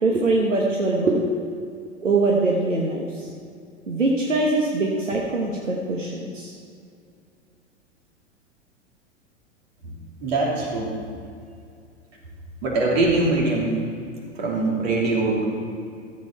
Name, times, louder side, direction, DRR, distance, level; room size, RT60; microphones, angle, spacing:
voice 1, 0.0-1.4 2.0-3.3 3.9-6.5, right 2 dB, 80° right, -2 dB, 1.3 m, -22 dB
voice 2, 10.2-10.9 12.6-13.8 14.4-15.6, right 2 dB, 55° right, -3 dB, 3.0 m, -22 dB
13.5 x 8.1 x 4.4 m, 2.4 s
figure-of-eight pair, 95°, 37 cm